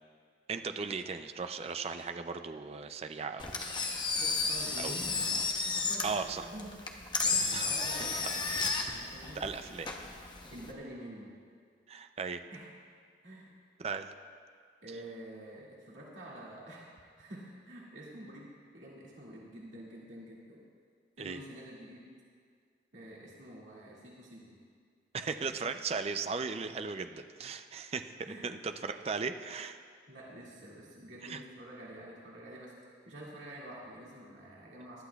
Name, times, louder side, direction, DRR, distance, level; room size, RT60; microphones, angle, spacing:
voice 1, 0.5-3.6 4.8-4.9 6.0-6.5 7.5-7.7 9.4-9.9 11.9-12.4 13.8-14.1 21.2-21.4 25.1-28.1 28.4-29.8 31.2-31.4, right 5 dB, 35° right, 8 dB, 0.4 m, -37 dB
Engine, 3.4-10.7, left 4 dB, 25° left, 0.8 m, -33 dB
voice 2, 4.2-5.1 5.6-6.8 7.6-8.2 8.8-9.7 10.5-11.3 12.5-12.7 13.2-13.5 14.8-16.9 17.2-20.6 21.2-22.1 22.9-24.6 28.2-28.4 30.1-32.7 33.1-35.0, right 1 dB, 80° right, -5 dB, 2.2 m, -48 dB
19.5 x 12.0 x 2.3 m, 2.1 s
head